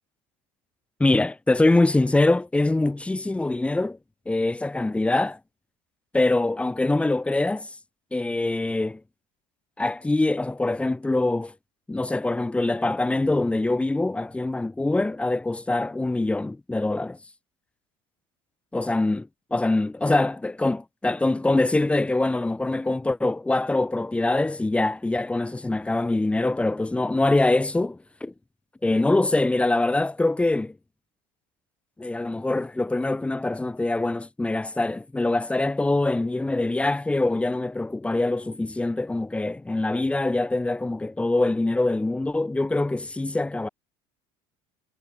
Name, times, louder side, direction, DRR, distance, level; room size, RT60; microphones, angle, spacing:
voice 1, 1.0-4.0 4.3-5.4 6.1-7.7 8.1-9.0 9.8-11.5 11.9-17.2 18.7-28.3 28.8-30.8 32.0-43.7, left 2 dB, 10° left, 5.8 m, -24 dB
cardioid pair, 125°, 13 cm